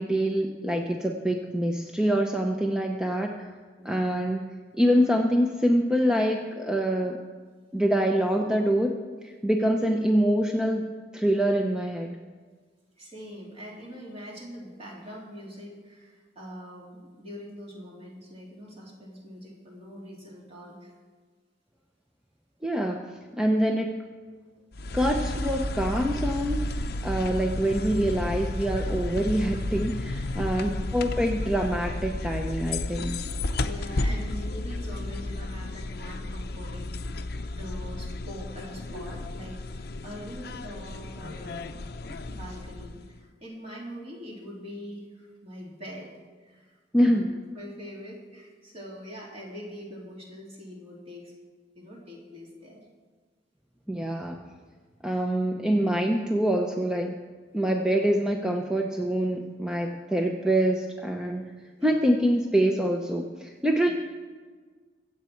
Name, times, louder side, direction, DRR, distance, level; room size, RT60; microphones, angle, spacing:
voice 1, 0.0-3.5 3.8-4.4 4.7-7.2 7.7-9.0 9.2-12.1 22.6-23.9 24.9-33.2 46.9-47.3 53.9-54.5 55.0-57.2 57.5-61.5 61.8-63.9, equal, 5° right, 2 dB, 0.8 m, -25 dB
voice 2, 3.8-4.2 13.0-20.9 27.2-27.4 30.5-30.8 33.5-46.1 46.4-47.3 47.5-51.3 51.7-52.8 61.8-62.1 63.8-63.9, equal, 35° right, -3 dB, 3.2 m, -43 dB
sound 1, 24.7-43.2, left 2 dB, 60° left, 0.7 m, -32 dB
23.5 x 8.1 x 4.6 m, 1.5 s
head